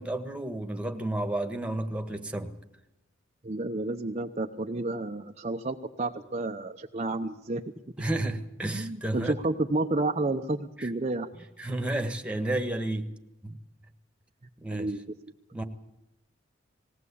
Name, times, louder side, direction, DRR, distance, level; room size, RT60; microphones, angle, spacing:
voice 1, 0.0-2.5 8.0-9.3 10.8-10.9 11.6-13.1 13.4-13.6 14.6-14.9 15.5-15.6, right 1 dB, 5° right, 1.6 m, -31 dB
voice 2, 3.4-7.6 8.7-11.3 14.7-15.0, right 2 dB, 35° right, 0.8 m, -30 dB
20.5 x 17.0 x 8.5 m
head